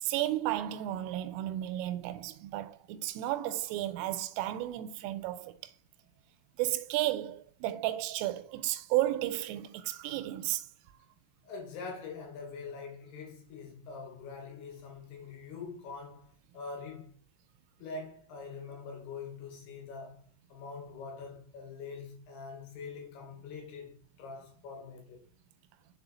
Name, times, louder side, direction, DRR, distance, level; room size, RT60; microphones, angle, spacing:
voice 1, 0.0-5.6 6.6-10.6, right 14 dB, 90° right, 3.2 m, -33 dB
voice 2, 11.5-17.1 17.8-20.2 20.5-25.2, left 4 dB, 70° left, 2.9 m, -44 dB
6.7 x 4.4 x 4.0 m
omnidirectional pair, 5.7 m